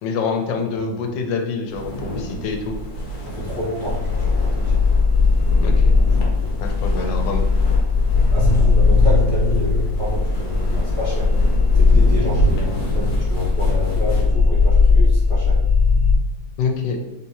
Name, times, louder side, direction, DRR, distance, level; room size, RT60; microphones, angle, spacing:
voice 1, 0.0-2.8 5.6-5.9 6.6-7.4 16.6-17.0, left 5 dB, 85° left, 4 dB, 1.3 m, -25 dB
sound 1, 1.7-14.3, right 1 dB, 60° left, 1.2 m, -29 dB
voice 2, 3.2-4.9 5.9-6.5 6.9-7.0 8.3-11.3 11.7-15.6, left 1 dB, 60° right, -9 dB, 0.3 m, -29 dB
sound 2, 3.8-16.2, left 4 dB, 80° right, 0.7 m, -17 dB
3.4 x 2.9 x 2.7 m, 1.2 s
omnidirectional pair, 2.0 m